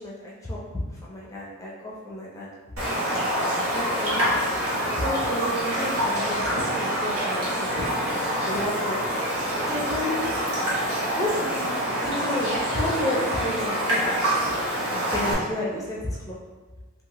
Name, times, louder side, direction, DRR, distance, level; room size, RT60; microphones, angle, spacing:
voice 1, 0.0-2.5 3.7-4.3 4.8-7.7 8.4-9.0 9.6-10.2 11.1-11.6 12.0-14.2 14.9-16.4, left 1 dB, 15° left, -6 dB, 0.5 m, -31 dB
Raindrop, 2.8-15.3, equal, 80° right, 0.9 m, -26 dB
2.8 x 2.5 x 2.9 m, 1.3 s
head